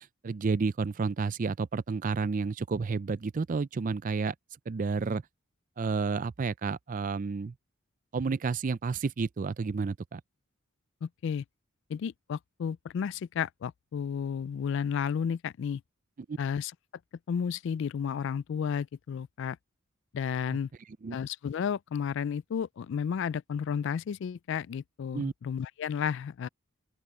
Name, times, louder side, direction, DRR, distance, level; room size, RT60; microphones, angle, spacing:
voice 1, 0.2-4.3 4.7-5.2 5.8-7.5 8.1-10.2 16.3-16.4 21.0-21.2 25.1-25.3, right 4 dB, 40° right, 0.4 m, -30 dB
voice 2, 11.0-11.4 11.9-15.8 16.4-16.7 17.3-19.6 20.1-20.7 21.1-26.5, left 7 dB, 60° left, 0.3 m, -32 dB
open air
head